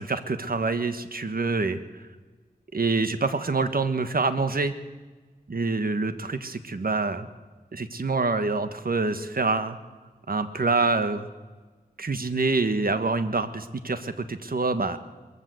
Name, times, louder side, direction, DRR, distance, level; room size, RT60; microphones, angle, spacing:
voice 1, 0.0-1.8 2.7-4.7 5.5-7.3 7.7-9.8 10.3-11.3 12.0-15.0, right 3 dB, 65° right, 10 dB, 1.4 m, -26 dB
22.0 x 15.0 x 7.8 m, 1.3 s
wide cardioid pair, 60°, 16 cm